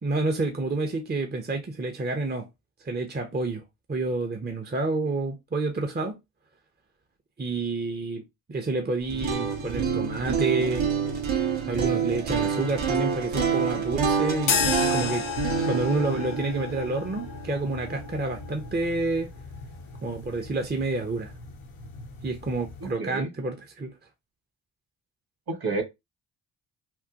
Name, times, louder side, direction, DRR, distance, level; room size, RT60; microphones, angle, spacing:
voice 1, 0.0-2.5 2.8-3.6 3.9-6.2 7.4-8.2 8.5-10.9 11.7-15.2 15.6-19.3 20.0-21.3 22.2-23.9, right 3 dB, 20° right, 0.7 m, -29 dB
sound 1, 9.0-19.0, right 6 dB, 70° right, 1.2 m, -28 dB
sound 2, 14.4-22.9, left 6 dB, 80° left, 0.9 m, -34 dB
voice 2, 22.8-23.3 25.5-25.8, right 3 dB, 45° right, 1.4 m, -30 dB
3.7 x 2.2 x 2.8 m
supercardioid pair, 45°, 49 cm